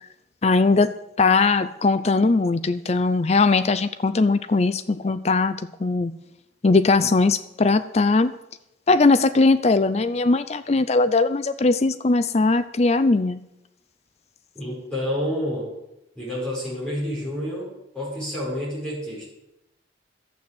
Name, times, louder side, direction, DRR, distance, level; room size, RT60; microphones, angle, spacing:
voice 1, 0.4-6.1 6.6-8.3 8.9-13.4, left 3 dB, 35° left, 14 dB, 0.5 m, -20 dB
voice 2, 14.6-15.7 16.2-17.7 17.9-19.3, equal, 5° left, -8 dB, 5.3 m, -29 dB
12.0 x 7.8 x 8.4 m, 0.86 s
head